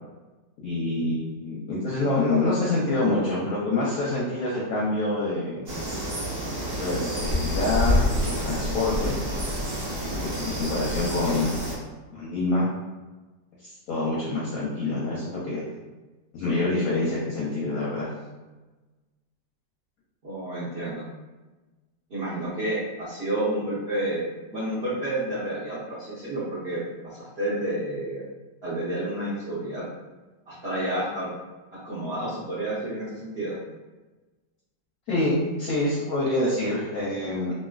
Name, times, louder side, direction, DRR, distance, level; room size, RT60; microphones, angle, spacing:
voice 1, 0.6-5.6 6.7-9.1 10.1-11.5 12.1-12.7 13.6-15.6 16.3-18.1 35.1-37.5, left 2 dB, 65° left, -5 dB, 0.9 m, -26 dB
sound 1, 5.7-11.8, left 1 dB, 70° right, 0.5 m, -28 dB
voice 2, 20.2-21.0 22.1-24.2 24.5-28.2 28.6-29.8 30.5-31.3 31.8-33.5, right 1 dB, 45° right, -11 dB, 0.8 m, -30 dB
3.0 x 2.5 x 2.4 m, 1.2 s
omnidirectional pair, 2.0 m